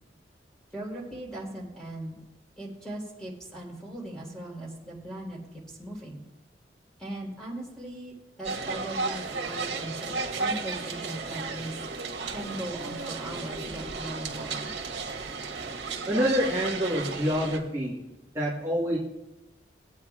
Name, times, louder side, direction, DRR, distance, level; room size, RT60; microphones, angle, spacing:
voice 1, 0.7-2.2 2.6-5.4 5.7-6.2 7.0-11.8 12.3-14.8, right 1 dB, 5° left, -4 dB, 3.6 m, -39 dB
sound 1, 8.4-17.6, right 4 dB, 85° right, 1.7 m, -34 dB
voice 2, 16.1-18.0 18.3-19.0, equal, 15° right, -8 dB, 1.5 m, -26 dB
21.5 x 8.8 x 2.4 m, 0.99 s
head